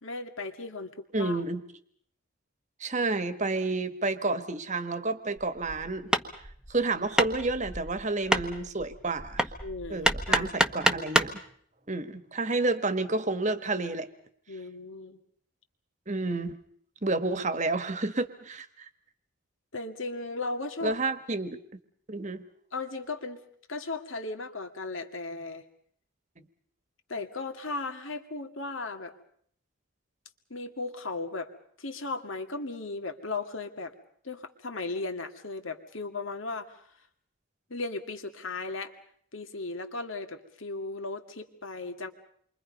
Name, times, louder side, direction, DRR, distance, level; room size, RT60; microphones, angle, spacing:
voice 1, 0.0-1.4 9.6-10.5 14.5-15.2 19.7-21.0 22.7-23.4 23.7-25.6 27.1-29.1 30.5-31.5 31.8-33.9 34.2-36.7 37.7-38.9 39.3-42.1, left 3 dB, 65° left, 6 dB, 2.3 m, -36 dB
voice 2, 1.1-1.6 2.8-6.1 6.7-9.5 9.9-11.3 11.9-14.1 16.1-16.6 17.0-18.7 20.8-21.6 22.1-22.4, right 3 dB, 35° right, 11 dB, 1.5 m, -30 dB
Hammer, 5.4-11.4, right 1 dB, 5° right, 1.1 m, -29 dB
28.5 x 24.0 x 5.4 m, 0.62 s
head